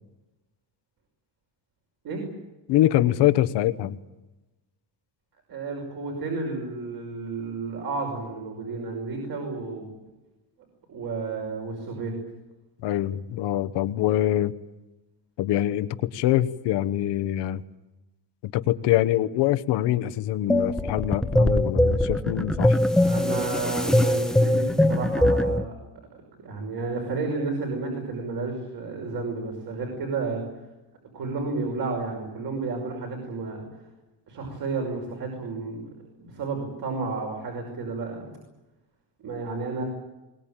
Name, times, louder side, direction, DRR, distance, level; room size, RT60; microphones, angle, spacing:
voice 1, 2.7-4.0 12.8-14.5 15.4-17.6 18.4-22.8, left 13 dB, 80° left, 12 dB, 1.2 m, -24 dB
voice 2, 5.5-9.9 10.9-12.1 23.0-25.7 26.4-30.4 31.1-33.6 34.3-35.8 36.2-38.3 39.2-39.8, right 3 dB, 60° right, 1 dB, 5.8 m, -31 dB
sound 1, 20.5-25.6, left 1 dB, ahead, 0.8 m, -22 dB
22.5 x 19.5 x 9.0 m, 1.0 s
cardioid pair, 145°, 41 cm